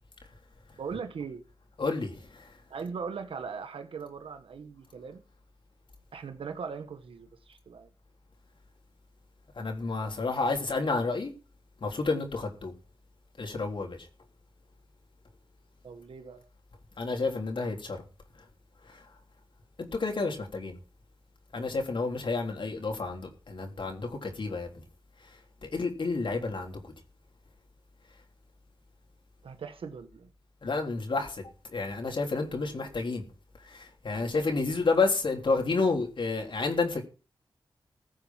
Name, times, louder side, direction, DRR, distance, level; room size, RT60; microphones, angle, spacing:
voice 1, 0.8-1.4 2.7-5.2 6.1-7.9 15.8-16.4 29.4-30.3, right 5 dB, 90° right, 1.4 m, -39 dB
voice 2, 1.8-2.5 9.6-11.3 11.8-12.7 13.4-14.0 17.0-18.0 18.9-19.0 19.8-20.8 21.5-24.7 25.6-26.8 30.6-31.4 31.7-33.2 33.7-37.0, left 3 dB, 65° left, 3.6 m, -30 dB
15.5 x 7.7 x 5.9 m
cardioid pair, 65°, 9 cm